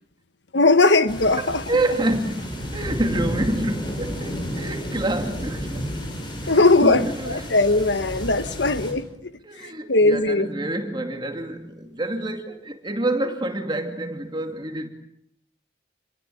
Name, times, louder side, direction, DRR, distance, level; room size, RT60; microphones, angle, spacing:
voice 1, 0.5-1.6 6.5-9.0 9.9-10.5, left 2 dB, 85° left, 1.4 m, -19 dB
sound 1, 1.1-8.9, equal, 25° left, 7.7 m, -32 dB
voice 2, 1.4-6.0 6.4-7.6 7.9-8.0 9.4-14.9, right 1 dB, 25° right, 2.5 m, -28 dB
28.5 x 22.0 x 8.6 m
head